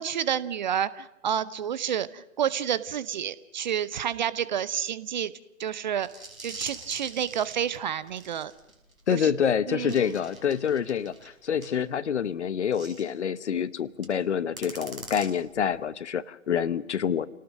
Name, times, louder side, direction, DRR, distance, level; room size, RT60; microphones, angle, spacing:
voice 1, 0.0-5.3 5.6-6.1 6.4-8.5 9.1-9.3 9.7-10.0, right 9 dB, 35° right, 18 dB, 0.7 m, -29 dB
sound 1, 6.0-11.8 12.7-13.1 13.9-14.2 14.6-15.8, right 2 dB, 85° right, 5.7 m, -44 dB
voice 2, 9.1-17.3, left 8 dB, 55° left, 17 dB, 1.0 m, -27 dB
29.0 x 18.5 x 6.5 m, 0.92 s
figure-of-eight pair, 125°, 41 cm